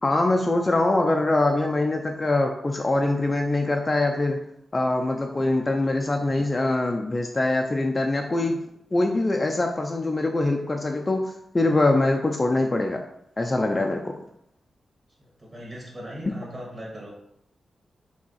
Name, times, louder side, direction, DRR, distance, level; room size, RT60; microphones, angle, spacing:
voice 1, 0.0-4.4 4.7-8.6 8.9-13.0 13.4-14.1, left 2 dB, 20° left, 2 dB, 0.5 m, -23 dB
voice 2, 15.2-17.1, equal, 30° right, -2 dB, 2.0 m, -39 dB
5.1 x 3.5 x 5.6 m, 0.75 s
wide cardioid pair, 155°, 0 cm